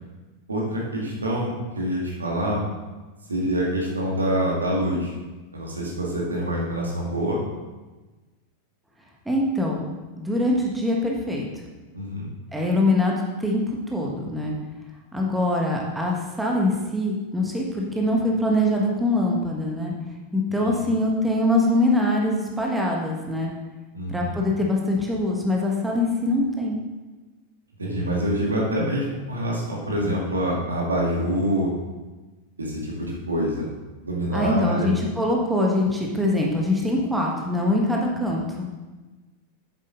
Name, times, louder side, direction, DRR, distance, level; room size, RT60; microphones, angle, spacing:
voice 1, 0.5-2.6 3.3-5.1 5.5-7.4 11.9-12.3 20.6-20.7 23.9-24.4 27.8-31.7 32.6-33.7 34.1-34.9, equal, 75° right, -2 dB, 2.1 m, -26 dB
voice 2, 9.2-11.4 12.5-13.6 13.9-14.5 15.1-19.9 20.3-23.5 24.1-26.8 34.3-38.7, left 1 dB, 5° right, -2 dB, 1.4 m, -23 dB
8.9 x 7.3 x 3.8 m, 1.2 s
figure-of-eight pair, 90°, 0 cm